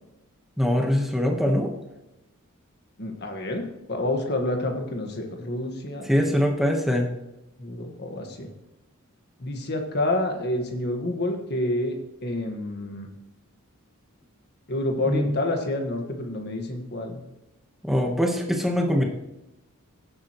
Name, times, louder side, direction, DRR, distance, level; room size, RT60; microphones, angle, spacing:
voice 1, 0.6-1.7 6.0-7.1 15.0-15.4 17.8-19.1, equal, ahead, 2 dB, 1.2 m, -23 dB
voice 2, 3.0-3.6 3.9-6.3 7.6-8.5 9.4-12.0 12.2-13.1 14.7-17.2, left 1 dB, 50° left, 3 dB, 1.6 m, -28 dB
17.0 x 7.4 x 3.1 m, 0.96 s
head